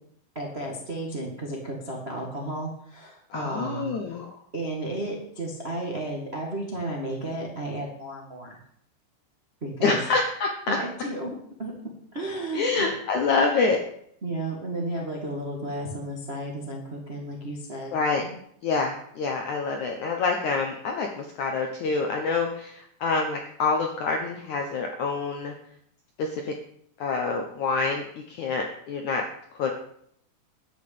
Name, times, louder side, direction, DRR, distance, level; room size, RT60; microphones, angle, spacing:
voice 1, 0.3-4.0 4.5-8.6 9.6-10.0 10.7-11.7 12.1-12.9 14.2-18.4, right 1 dB, 80° right, -1 dB, 0.5 m, -33 dB
voice 2, 3.3-4.3 9.8-10.8 12.5-13.8 17.9-18.2 18.6-25.5 26.2-26.5 27.0-29.2 29.6-29.7, left 4 dB, 75° left, 3 dB, 1.7 m, -26 dB
11.5 x 6.5 x 8.6 m, 0.67 s
omnidirectional pair, 5.1 m